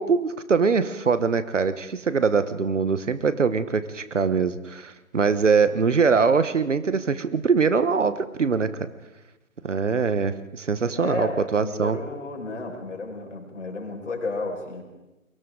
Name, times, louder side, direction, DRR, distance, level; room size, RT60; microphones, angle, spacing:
voice 1, 0.0-8.7 9.6-12.0, right 5 dB, 60° right, 13 dB, 1.2 m, -23 dB
voice 2, 10.9-14.8, left 3 dB, 60° left, 1 dB, 5.4 m, -32 dB
30.0 x 22.5 x 3.8 m, 1.0 s
figure-of-eight pair, 145°, 41 cm